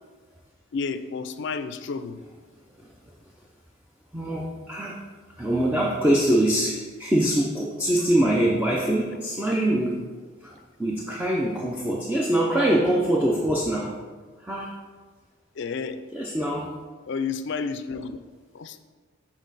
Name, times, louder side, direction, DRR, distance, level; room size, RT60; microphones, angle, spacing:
voice 1, 0.7-2.2 15.6-16.0 17.1-18.2 18.5-18.8, left 5 dB, 60° left, 10 dB, 0.4 m, -31 dB
voice 2, 4.1-5.0 5.4-10.0 10.4-14.0 14.4-14.7 16.1-16.7, right 1 dB, 10° right, -4 dB, 0.5 m, -24 dB
7.2 x 4.0 x 4.0 m, 1.4 s
head